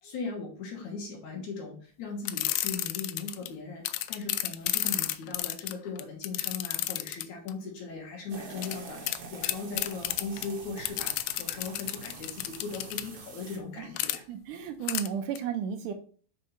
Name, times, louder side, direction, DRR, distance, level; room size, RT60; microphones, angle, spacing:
voice 1, 0.0-14.2, left 4 dB, 60° left, 1 dB, 2.3 m, -39 dB
sound 1, 2.3-3.5 3.9-7.5 8.6-8.8 9.1-9.2 9.4-10.5 10.9-13.0 14.0-14.2 14.9-15.1 15.4-15.5, left 15 dB, 90° left, 2.5 m, -31 dB
sound 2, 8.3-13.6, right 4 dB, 55° right, 1.7 m, -45 dB
voice 2, 14.3-15.9, right 8 dB, 85° right, 7 dB, 1.9 m, -33 dB
5.4 x 5.1 x 5.7 m, 0.43 s
omnidirectional pair, 4.4 m